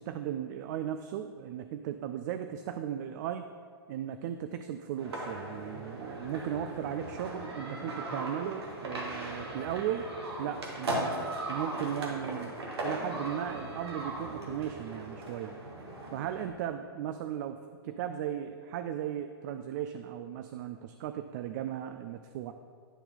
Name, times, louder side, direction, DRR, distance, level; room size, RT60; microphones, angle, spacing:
voice 1, 0.0-3.5 3.9-10.1 10.4-12.6 12.8-15.5 16.1-17.6 17.8-22.5, right 10 dB, 45° right, 9 dB, 0.4 m, -36 dB
sound 1, 5.0-16.5, right 1 dB, 80° right, 1.7 m, -38 dB
10.0 x 4.4 x 4.1 m, 2.1 s
hypercardioid pair, 125°, 13 cm